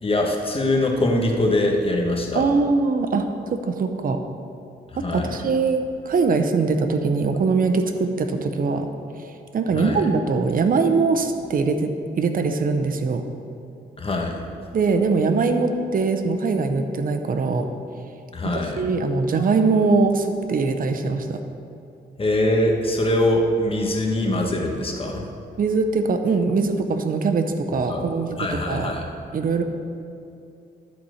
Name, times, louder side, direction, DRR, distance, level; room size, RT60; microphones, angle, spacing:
voice 1, 0.0-2.4 5.0-5.4 9.7-10.0 14.0-14.4 18.3-18.8 22.2-25.2 27.9-28.0 28.4-29.0, left 1 dB, 30° left, 1 dB, 1.4 m, -22 dB
voice 2, 2.3-4.2 5.0-8.9 9.5-11.9 12.2-13.2 14.7-17.7 18.8-21.4 25.6-28.9 29.3-29.6, right 4 dB, 50° right, 7 dB, 0.7 m, -22 dB
11.5 x 4.3 x 6.3 m, 2.6 s
cardioid pair, 85°, 18 cm